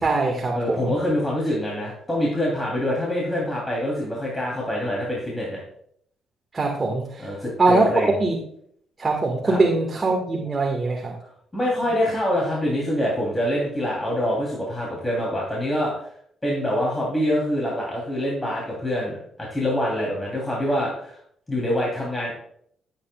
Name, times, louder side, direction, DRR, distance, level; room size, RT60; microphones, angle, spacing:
voice 1, 0.0-1.0 6.5-7.3 7.6-8.4 9.0-11.1, right 3 dB, 30° right, 0 dB, 1.7 m, -22 dB
voice 2, 0.5-5.6 7.2-8.2 9.4-9.6 11.5-16.1 16.4-19.2 19.5-21.2 21.5-22.3, left 1 dB, 15° left, -4 dB, 3.1 m, -25 dB
14.0 x 8.4 x 2.3 m, 0.67 s
cardioid pair, 90°, 0 cm